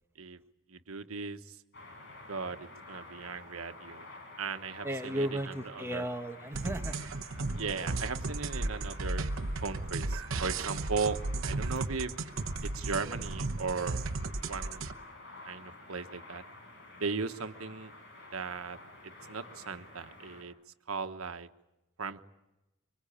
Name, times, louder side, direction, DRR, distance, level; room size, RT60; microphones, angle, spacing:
voice 1, 0.7-1.6 2.3-4.0 4.4-6.1 7.6-9.3 9.6-12.1 12.7-14.0 14.4-14.9 15.4-16.4 17.0-17.9 18.3-18.8 19.3-20.5 20.9-21.5 22.0-22.3, right 4 dB, 85° right, 9 dB, 1.3 m, -37 dB
sound 1, 1.7-20.4, left 2 dB, 55° left, 6.0 m, -50 dB
voice 2, 4.8-6.9, right 1 dB, 10° right, 6 dB, 1.2 m, -35 dB
sound 2, 6.5-14.9, right 3 dB, 65° right, 1.0 m, -35 dB
25.0 x 24.5 x 8.7 m, 0.97 s
head